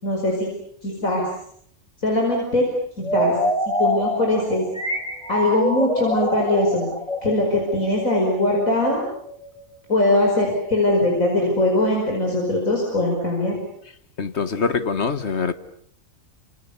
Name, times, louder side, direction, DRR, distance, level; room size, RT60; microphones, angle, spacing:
voice 1, 0.0-0.5 0.8-1.2 2.0-2.7 3.0-3.4 3.8-4.6 5.3-6.9 7.2-9.0 9.9-13.6, left 1 dB, 70° left, 5.7 m, -21 dB
sound 1, 3.0-9.7, equal, 5° left, 4.1 m, -26 dB
voice 2, 14.2-15.5, left 5 dB, 50° left, 1.5 m, -24 dB
28.5 x 27.0 x 7.0 m
omnidirectional pair, 1.4 m